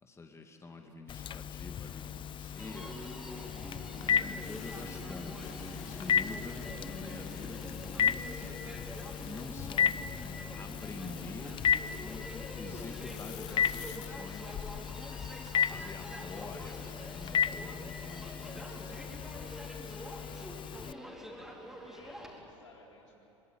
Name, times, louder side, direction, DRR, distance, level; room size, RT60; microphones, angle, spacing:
voice 1, 0.0-3.2 3.9-8.8 9.2-9.9 10.6-11.6 12.0-14.6 15.7-19.5, left 3 dB, 20° left, 4 dB, 2.2 m, -47 dB
sound 1, 0.7-1.2 3.1-10.3 10.6-12.3 12.8-14.1, left 13 dB, 50° left, 1.5 m, -54 dB
Telephone, 1.1-20.9, left 8 dB, 35° left, 0.7 m, -35 dB
Human voice, 2.6-22.4, equal, ahead, 4.4 m, -46 dB
voice 2, 21.8-23.2, left 2 dB, 85° left, -2 dB, 4.4 m, -57 dB
24.0 x 22.0 x 9.3 m, 3.0 s
hypercardioid pair, 80°, 15 cm